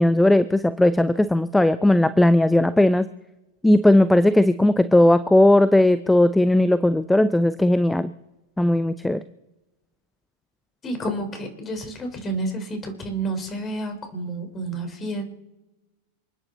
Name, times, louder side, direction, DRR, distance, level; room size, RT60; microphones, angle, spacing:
voice 1, 0.0-3.1 3.6-8.1 8.6-9.2, left 1 dB, 5° left, 14 dB, 0.6 m, -17 dB
voice 2, 10.8-15.2, right 2 dB, 25° left, 5 dB, 4.5 m, -30 dB
28.5 x 9.9 x 4.2 m, 1.0 s
figure-of-eight pair, 90°, 0 cm